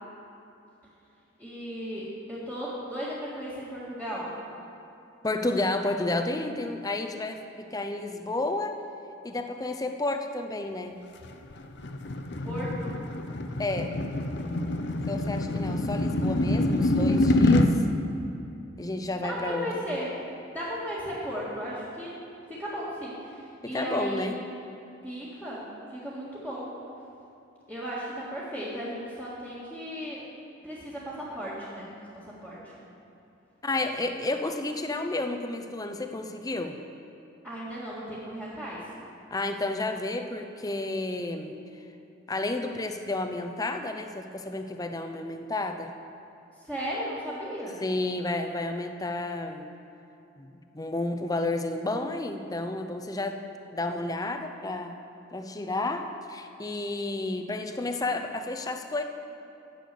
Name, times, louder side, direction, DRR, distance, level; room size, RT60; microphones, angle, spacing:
voice 1, 1.4-4.3 12.4-12.9 19.1-20.2 20.5-22.1 22.5-24.3 25.0-26.7 27.7-30.2 30.6-32.7 37.4-38.8 46.6-47.8, equal, 10° right, -11 dB, 1.9 m, -36 dB
voice 2, 5.2-8.7 9.2-10.9 13.6-13.9 15.1-17.8 18.8-19.9 23.6-24.4 33.6-36.8 39.3-41.6 42.3-45.9 47.8-49.7 50.4-53.4 53.7-54.9 55.3-59.0, left 2 dB, 20° left, 6 dB, 0.6 m, -31 dB
sound 1, 11.2-17.7, left 2 dB, 60° left, 0.7 m, -26 dB
10.0 x 6.7 x 8.4 m, 2.9 s
head